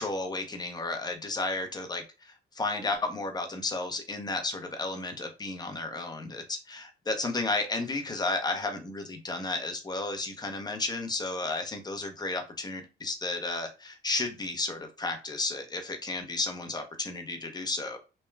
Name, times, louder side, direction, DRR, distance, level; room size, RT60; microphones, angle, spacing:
voice 1, 0.0-18.0, left 2 dB, 20° left, 0.7 m, -33 dB
3.1 x 2.2 x 2.2 m
cardioid pair, 90°, 20 cm